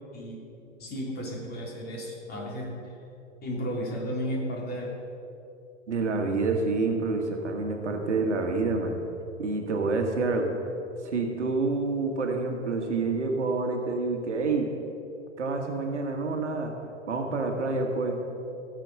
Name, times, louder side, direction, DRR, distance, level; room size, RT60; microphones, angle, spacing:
voice 1, 0.8-2.7 3.4-4.9, equal, 25° left, -2 dB, 3.0 m, -33 dB
voice 2, 5.9-9.0 9.4-10.5 11.0-14.7 15.4-16.7 17.1-18.2, right 3 dB, 75° right, 3 dB, 1.7 m, -28 dB
16.5 x 7.5 x 5.3 m, 2.7 s
figure-of-eight pair, 100°, 36 cm